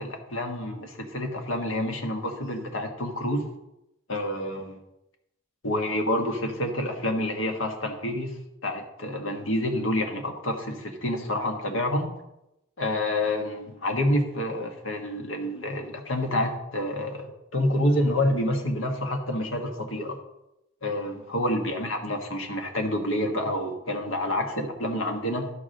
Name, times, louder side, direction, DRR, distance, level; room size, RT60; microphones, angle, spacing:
voice 1, 0.0-3.4 4.1-4.8 5.6-12.1 12.8-20.2 20.8-25.5, left 1 dB, 75° left, 4 dB, 1.5 m, -28 dB
12.0 x 4.8 x 6.5 m, 0.89 s
head